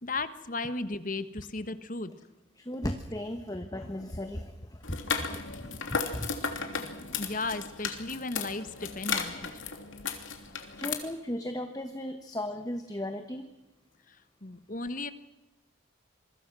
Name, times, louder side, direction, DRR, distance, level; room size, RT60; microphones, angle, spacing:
voice 1, 0.0-2.1 7.2-9.5 14.1-14.2 14.4-15.1, left 3 dB, 40° left, 12 dB, 1.4 m, -35 dB
voice 2, 2.6-6.5 10.5-13.5, left 1 dB, 20° left, 7 dB, 1.3 m, -37 dB
sound 1, 4.8-10.9, left 5 dB, 75° left, 3.1 m, -35 dB
27.0 x 23.5 x 6.2 m, 1.1 s
head